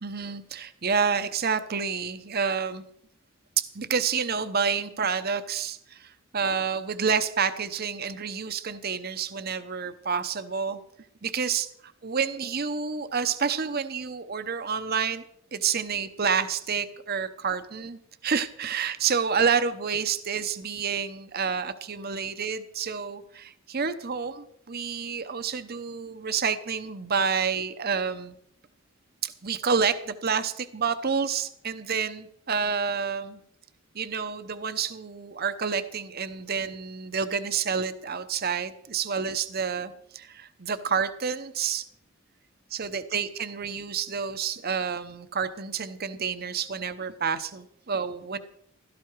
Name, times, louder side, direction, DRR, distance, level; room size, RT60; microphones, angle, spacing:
voice 1, 0.0-2.8 3.6-10.8 11.2-11.7 12.0-15.2 15.5-28.4 29.2-33.4 33.9-41.8 42.7-48.4, right 6 dB, 50° right, 11 dB, 0.9 m, -29 dB
16.5 x 13.5 x 4.7 m, 0.70 s
head